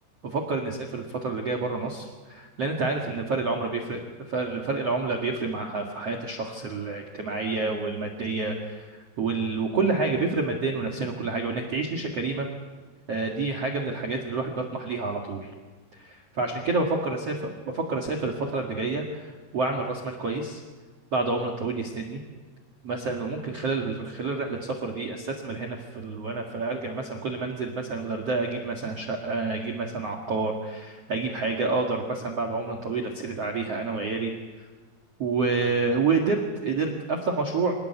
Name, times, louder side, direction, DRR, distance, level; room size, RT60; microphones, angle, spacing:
voice 1, 0.2-4.0 4.3-12.5 13.1-15.5 15.9-17.3 17.7-20.6 21.1-22.2 22.8-34.3 34.6-34.7 35.2-37.7, right 3 dB, 45° right, 2 dB, 2.2 m, -28 dB
26.5 x 19.0 x 8.1 m, 1.4 s
omnidirectional pair, 5.3 m